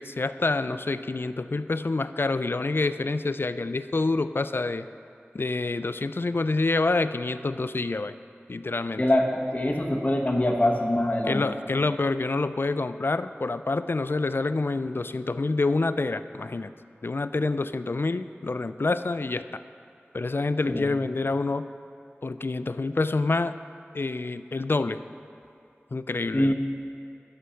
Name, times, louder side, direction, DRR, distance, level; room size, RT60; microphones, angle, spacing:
voice 1, 0.0-4.9 5.3-8.1 8.5-9.0 11.2-16.7 17.0-19.6 20.1-21.7 22.2-23.5 23.9-25.0 25.9-26.5, left 3 dB, 55° left, 12 dB, 0.3 m, -27 dB
voice 2, 9.0-11.4 20.7-20.8 26.3-26.5, left 1 dB, 35° left, 0 dB, 1.1 m, -24 dB
11.5 x 5.7 x 6.3 m, 2.5 s
wide cardioid pair, 40°, 4 cm